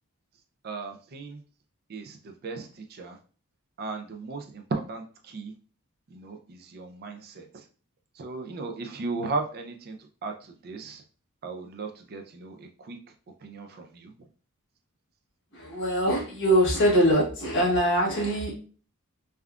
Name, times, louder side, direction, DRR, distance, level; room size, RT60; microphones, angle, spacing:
voice 1, 0.6-1.4 1.9-3.2 3.8-5.5 6.1-7.7 8.1-11.0 11.4-13.0 13.4-14.1, right 3 dB, 45° right, 5 dB, 0.4 m, -36 dB
voice 2, 15.5-18.6, equal, 55° left, -2 dB, 1.1 m, -23 dB
3.5 x 2.3 x 2.3 m, 0.40 s
head